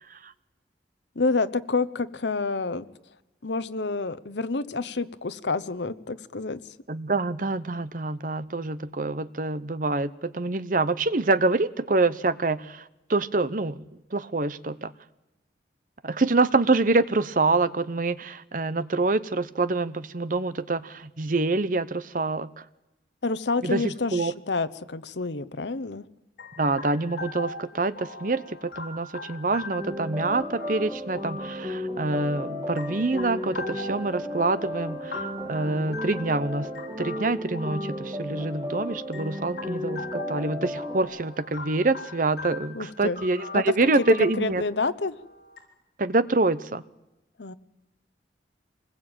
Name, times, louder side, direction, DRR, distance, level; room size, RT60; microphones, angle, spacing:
voice 1, 1.1-2.9 3.4-6.6 23.2-26.0 42.7-43.2 43.5-44.0 44.4-45.2 47.4-47.5, left 3 dB, 75° left, 13 dB, 1.0 m, -28 dB
voice 2, 6.9-12.8 13.1-13.8 14.1-14.9 16.0-22.5 23.6-23.8 24.1-24.3 26.6-36.7 37.0-44.6 46.0-46.8, right 3 dB, 50° right, 15 dB, 0.8 m, -26 dB
sound 1, 26.4-45.6, left 3 dB, 55° left, 6.5 m, -41 dB
sound 2, 29.8-41.0, equal, 20° right, 2.4 m, -34 dB
25.5 x 20.5 x 9.0 m, 1.0 s
head